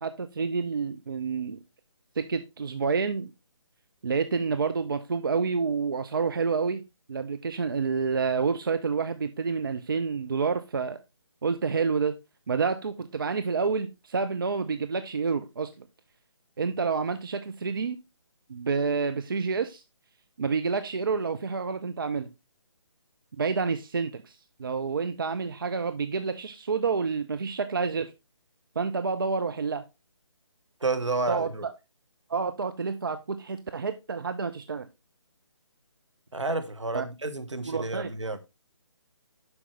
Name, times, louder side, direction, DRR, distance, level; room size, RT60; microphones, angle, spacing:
voice 1, 0.0-1.6 2.2-3.3 4.0-6.8 7.1-11.0 11.4-12.1 12.5-15.9 16.6-18.0 18.5-19.8 20.4-22.3 23.4-28.1 28.8-29.8 31.3-31.7 32.3-34.9 36.9-37.0 37.7-38.1, right 5 dB, 45° right, 0.5 m, -28 dB
voice 2, 30.8-31.6 36.3-38.4, right 3 dB, 70° right, 1.2 m, -30 dB
7.8 x 5.9 x 3.2 m
figure-of-eight pair, 145°, 16 cm